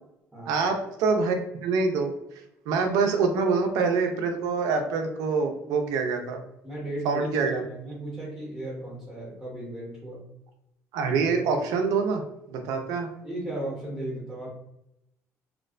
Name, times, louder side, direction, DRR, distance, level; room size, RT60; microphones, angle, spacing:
voice 1, 0.5-1.4 1.6-2.1 2.7-6.4 7.0-7.6 10.9-12.2 12.5-13.1, right 4 dB, 85° right, 5 dB, 0.4 m, -25 dB
voice 2, 6.6-10.2 13.2-14.5, right 1 dB, 5° right, -7 dB, 0.7 m, -35 dB
2.4 x 2.1 x 2.4 m, 0.83 s
cardioid pair, 155°, 6 cm